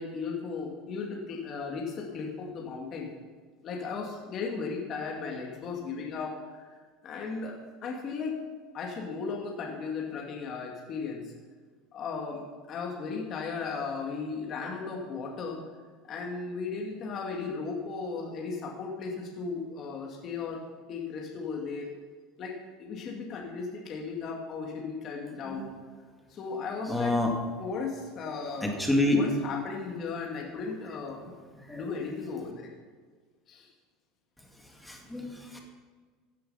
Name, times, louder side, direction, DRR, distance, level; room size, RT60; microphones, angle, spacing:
voice 1, 0.0-3.1 3.6-6.7 7.0-8.3 8.7-11.3 11.9-15.6 16.0-20.6 20.9-21.9 22.4-25.7 26.3-27.2 27.6-28.8 29.1-31.4 31.7-32.7 33.5-33.7, left 4 dB, 35° left, -1 dB, 2.2 m, -36 dB
voice 2, 26.9-27.3 28.6-29.2 31.7-31.8 34.9-35.6, left 2 dB, 5° left, 1 dB, 2.2 m, -27 dB
15.5 x 10.0 x 5.7 m, 1.5 s
cardioid pair, 155°, 0 cm